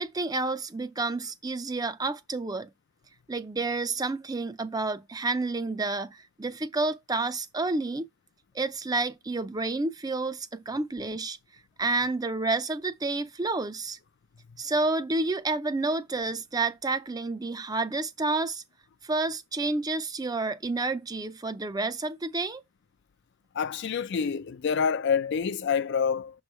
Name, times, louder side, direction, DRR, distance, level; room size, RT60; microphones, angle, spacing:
voice 1, 0.0-2.7 3.3-8.1 8.5-11.4 11.8-14.0 14.6-18.6 19.0-22.6, right 3 dB, 20° right, 0.4 m, -29 dB
voice 2, 23.5-26.4, left 6 dB, 55° left, 0.4 m, -27 dB
6.2 x 3.2 x 5.5 m
head